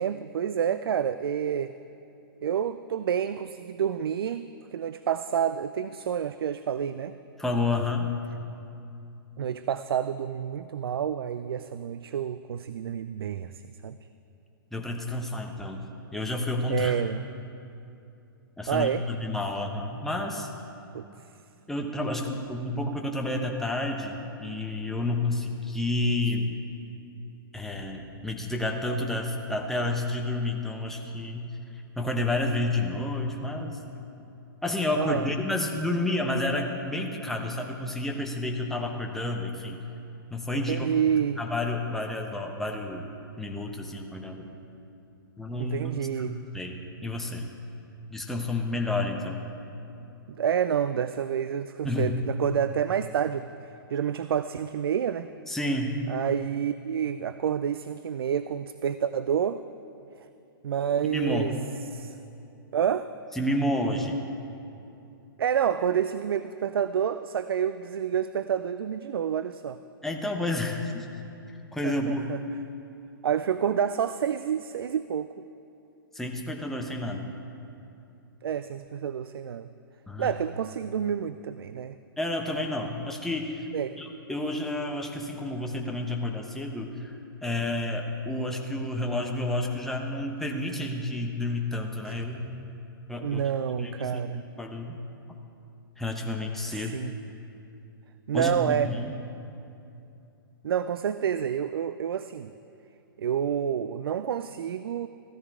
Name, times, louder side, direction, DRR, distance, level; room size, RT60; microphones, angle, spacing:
voice 1, 0.0-1.7 2.4-7.1 9.4-14.0 16.7-17.2 18.7-19.0 20.9-21.1 34.9-35.3 40.5-41.4 45.6-46.4 50.3-55.3 56.1-59.6 60.6-61.6 61.9-62.2 62.7-63.1 65.4-69.8 71.8-72.4 73.2-75.4 78.4-79.7 80.2-82.0 83.7-84.0 92.1-92.2 93.2-94.4 96.7-97.1 98.3-98.9 100.6-102.5 103.2-105.1, right 8 dB, 80° right, 12 dB, 0.4 m, -28 dB
voice 2, 7.4-8.1 14.7-15.8 16.1-17.0 18.6-20.5 21.7-26.5 27.5-31.5 32.0-33.8 34.6-39.8 40.3-40.9 41.4-43.1 43.4-44.6 45.4-47.5 48.1-49.4 51.8-52.2 55.5-56.0 61.1-61.5 63.3-64.2 70.0-71.1 71.7-72.3 76.1-77.3 80.1-80.3 82.2-83.7 84.0-87.1 87.4-92.7 93.1-94.2 94.6-95.0 96.0-97.0 98.3-99.1, left 2 dB, 5° left, 1 dB, 1.0 m, -30 dB
15.5 x 13.5 x 3.7 m, 2.8 s
hypercardioid pair, 130°, 12 cm